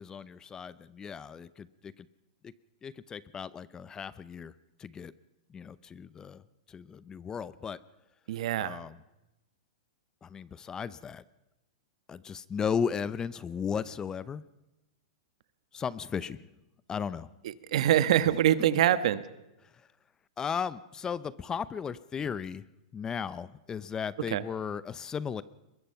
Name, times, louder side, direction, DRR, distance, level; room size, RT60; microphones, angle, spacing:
voice 1, 0.0-2.1 2.4-2.5 2.8-4.5 4.8-5.1 5.5-6.4 6.7-7.8 8.6-9.0 10.2-11.2 12.1-14.4 15.7-16.4 16.9-17.3 20.4-22.6 22.9-25.4, left 7 dB, 15° left, 18 dB, 0.7 m, -35 dB
voice 2, 8.3-8.8 17.7-19.2 24.3-24.4, right 11 dB, 65° right, 14 dB, 1.4 m, -24 dB
23.5 x 21.5 x 5.8 m, 0.95 s
hypercardioid pair, 135°, 4 cm